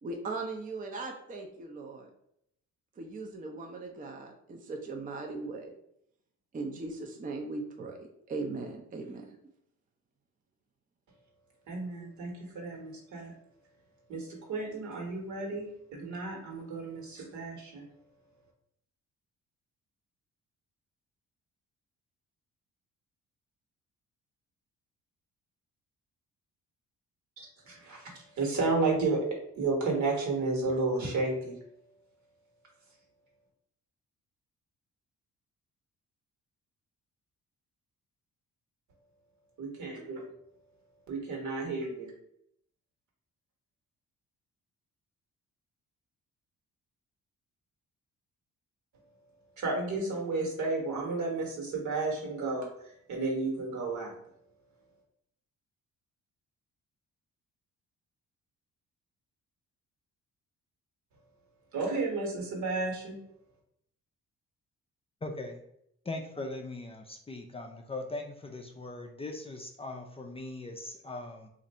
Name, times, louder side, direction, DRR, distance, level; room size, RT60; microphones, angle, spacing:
voice 1, 0.0-2.1 3.0-5.8 6.5-9.4, right 3 dB, 25° right, 2 dB, 0.5 m, -39 dB
voice 2, 11.7-13.3 14.1-17.8 27.4-31.5 39.6-40.2 41.1-42.1 49.6-52.7 53.1-54.1 61.7-63.2, right 3 dB, 70° right, 0 dB, 1.4 m, -32 dB
voice 3, 65.2-65.6 66.1-71.5, left 2 dB, 20° left, 3 dB, 0.4 m, -40 dB
2.5 x 2.5 x 4.2 m, 0.73 s
cardioid pair, 90°, 30 cm